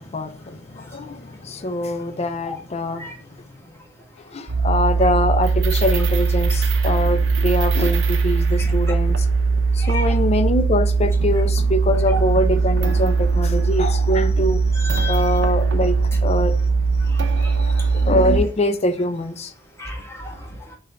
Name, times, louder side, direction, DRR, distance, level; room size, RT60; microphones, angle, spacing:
voice 1, 0.0-3.1 4.3-9.3 9.7-14.6 15.1-16.6 17.6-19.5, left 1 dB, 35° left, 0.5 m, -23 dB
sound 1, 4.5-18.4, right 4 dB, 75° right, 0.6 m, -20 dB
voice 2, 9.8-10.1 14.8-15.5 17.1-17.5 19.8-20.8, left 2 dB, 15° left, 1.4 m, -33 dB
4.0 x 3.7 x 3.3 m
head